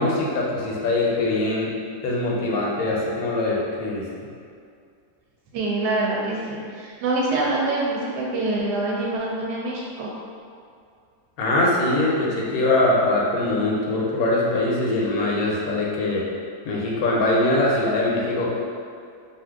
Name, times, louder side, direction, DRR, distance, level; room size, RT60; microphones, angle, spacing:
voice 1, 0.0-1.7 2.0-4.1 11.4-16.2 16.6-18.5, left 2 dB, 70° left, -3 dB, 1.0 m, -22 dB
voice 2, 5.5-10.1, right 2 dB, 75° right, -4 dB, 1.1 m, -25 dB
2.7 x 2.5 x 3.4 m, 2.3 s
omnidirectional pair, 1.8 m